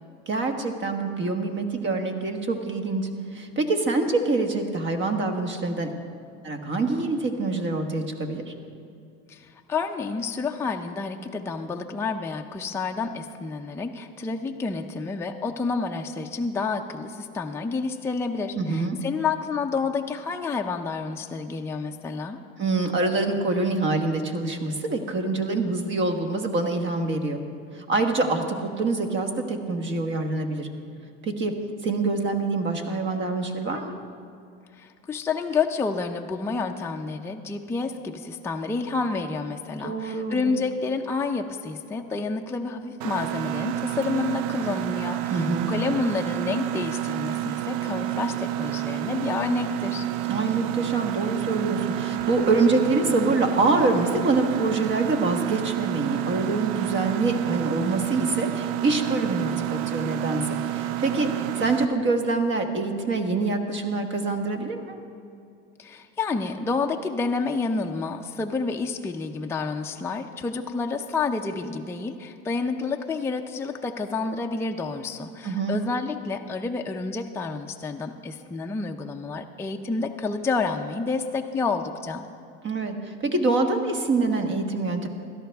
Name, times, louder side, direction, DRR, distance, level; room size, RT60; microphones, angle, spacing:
voice 1, 0.3-5.9 6.4-8.4 18.5-19.0 22.6-27.4 27.7-30.7 31.2-31.5 31.8-33.9 39.8-40.5 45.3-45.7 50.3-65.0 75.4-75.8 82.6-85.1, right 3 dB, 40° right, 5 dB, 1.4 m, -25 dB
voice 2, 9.3-22.4 34.8-50.1 65.8-82.3, left 4 dB, 10° left, 2 dB, 0.5 m, -29 dB
Mechanisms, 43.0-61.9, right 14 dB, 80° right, 0.5 m, -29 dB
16.5 x 12.5 x 3.5 m, 2.4 s
supercardioid pair, 115°, 29 cm